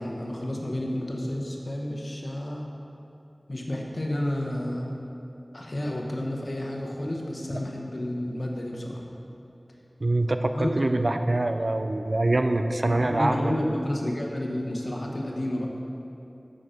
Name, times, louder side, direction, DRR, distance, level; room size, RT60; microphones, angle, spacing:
voice 1, 0.0-2.6 3.5-4.9 5.5-9.0 10.5-10.7 12.9-15.7, left 1 dB, 65° left, -1 dB, 1.1 m, -30 dB
voice 2, 10.0-13.5, right 2 dB, 60° right, 7 dB, 0.5 m, -24 dB
8.5 x 6.5 x 5.2 m, 2.8 s
wide cardioid pair, 45°, 0 cm